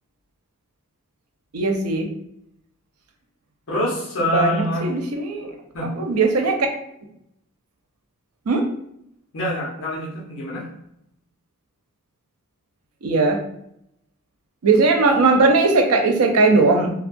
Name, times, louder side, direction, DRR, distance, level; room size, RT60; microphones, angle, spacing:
voice 1, 1.5-2.1 4.3-5.5 6.0-6.7 8.5-8.6 13.0-13.4 14.6-16.9, right 3 dB, 85° right, 4 dB, 0.5 m, -18 dB
voice 2, 3.7-4.9 5.7-5.9 9.3-10.7, left 1 dB, 65° left, -5 dB, 0.8 m, -25 dB
3.2 x 2.3 x 2.5 m, 0.76 s
head